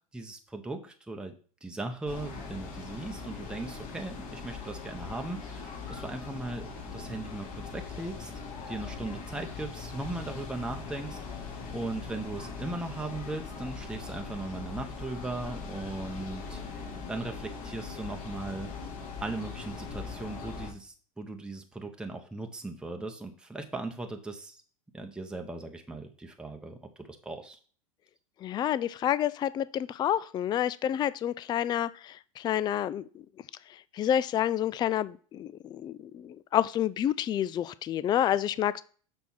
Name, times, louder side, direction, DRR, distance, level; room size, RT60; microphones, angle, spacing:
voice 1, 0.1-1.3 1.6-8.3 8.7-18.7 19.2-24.6 24.9-27.6, right 2 dB, 5° right, 3 dB, 0.9 m, -38 dB
sound 1, 2.1-20.7, left 5 dB, 50° left, 3.5 m, -41 dB
voice 2, 28.4-33.0 33.9-38.8, left 11 dB, 25° left, 17 dB, 0.3 m, -29 dB
6.1 x 4.4 x 5.6 m, 0.43 s
hypercardioid pair, 90°, 18 cm